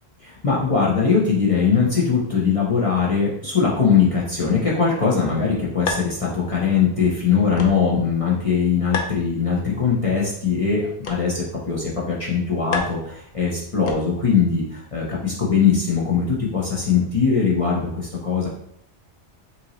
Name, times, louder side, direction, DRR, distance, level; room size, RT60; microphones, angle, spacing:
voice 1, 0.2-18.5, left 6 dB, 35° left, -6 dB, 0.9 m, -21 dB
sound 1, 5.8-14.4, left 4 dB, 60° left, 0.8 m, -35 dB
5.6 x 2.7 x 3.0 m, 0.70 s
omnidirectional pair, 1.1 m